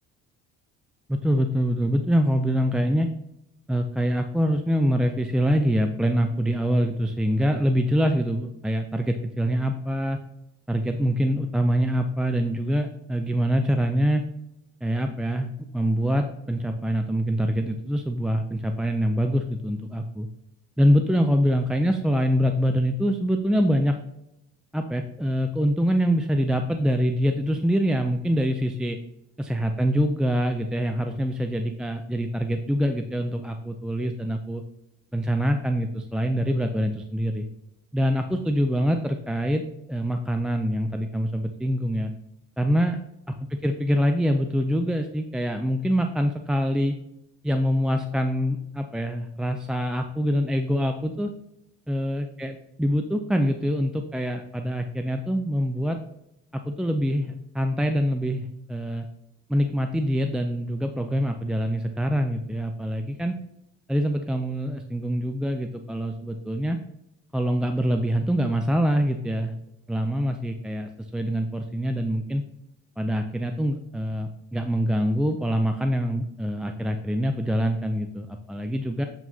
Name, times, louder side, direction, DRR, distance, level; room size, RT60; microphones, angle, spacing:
voice 1, 1.1-3.1 3.7-10.2 10.7-14.2 14.8-20.3 20.8-24.0 24.7-29.0 29.4-34.6 35.1-37.5 37.9-39.6 39.9-42.1 42.6-43.0 43.3-47.0 47.4-51.3 51.9-56.0 56.5-59.1 59.5-63.3 63.9-66.8 67.3-69.6 69.9-72.4 73.0-79.0, equal, ahead, 5 dB, 0.4 m, -25 dB
7.8 x 4.6 x 2.8 m, 0.83 s
cardioid pair, 110°, 30 cm